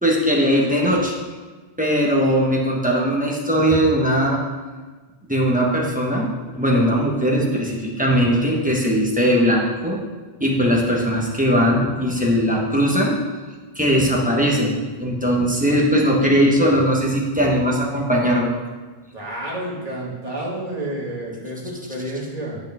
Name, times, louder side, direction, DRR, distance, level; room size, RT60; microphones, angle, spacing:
voice 1, 0.0-1.1 1.8-4.4 5.3-6.3 6.5-10.0 10.4-13.2 13.7-18.5, equal, 10° right, -3 dB, 1.3 m, -19 dB
voice 2, 19.1-22.6, right 1 dB, 40° right, -6 dB, 2.3 m, -30 dB
8.5 x 8.1 x 3.6 m, 1.3 s
omnidirectional pair, 1.1 m